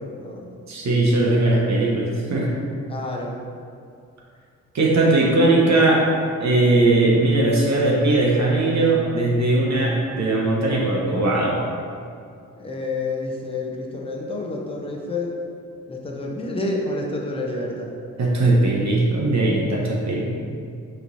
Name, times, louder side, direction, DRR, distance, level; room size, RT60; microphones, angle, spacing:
voice 1, 0.0-0.5 2.9-3.4 12.6-15.3 15.9-17.9, left 2 dB, 15° left, -1 dB, 0.9 m, -29 dB
voice 2, 0.7-2.5 4.7-6.0 6.4-11.6 18.2-20.3, right 2 dB, 50° right, -3 dB, 1.0 m, -19 dB
6.2 x 3.1 x 2.7 m, 2.4 s
hypercardioid pair, 45°, 35 cm